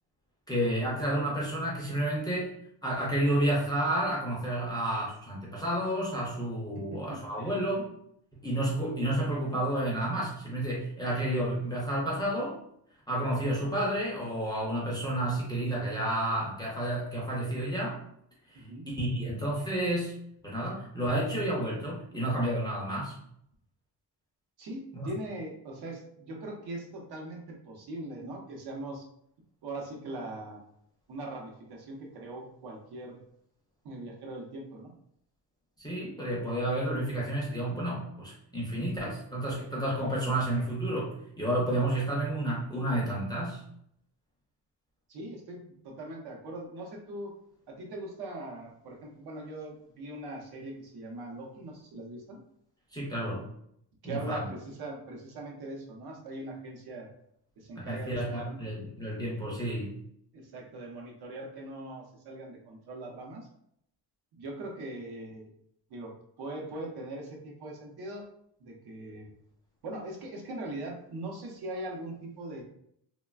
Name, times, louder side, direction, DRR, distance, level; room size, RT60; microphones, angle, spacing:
voice 1, 0.5-2.5 2.8-7.9 8.3-12.6 13.1-18.0 19.0-20.1 20.4-23.1 24.9-25.1 35.8-43.6 52.9-53.5 54.0-54.4 57.8-59.9, right 1 dB, 10° left, -5 dB, 0.4 m, -30 dB
voice 2, 6.7-7.5 18.5-18.9 24.6-29.0 29.6-30.6 31.1-33.2 33.8-34.9 45.1-47.3 47.7-52.4 54.0-57.1 57.6-58.6 60.3-63.5 64.3-65.5 65.9-66.1 66.4-68.3 68.6-69.3 69.8-72.6, right 1 dB, 65° right, 0 dB, 0.7 m, -41 dB
3.1 x 2.2 x 2.3 m, 0.71 s
cardioid pair, 175°, 41 cm